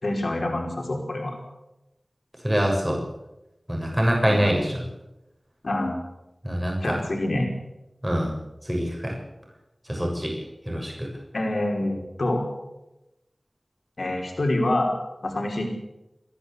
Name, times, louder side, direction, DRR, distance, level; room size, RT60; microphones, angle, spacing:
voice 1, 0.0-1.4 4.3-4.4 5.6-6.0 6.8-7.5 11.3-12.5 14.0-15.7, left 1 dB, 80° left, 2 dB, 5.3 m, -26 dB
voice 2, 2.4-3.0 3.7-4.8 6.4-7.0 8.0-8.3 8.6-9.2 9.9-10.3 10.6-11.1, equal, 15° right, 0 dB, 6.8 m, -24 dB
28.5 x 11.0 x 8.3 m, 0.94 s
wide cardioid pair, 40°, 0 cm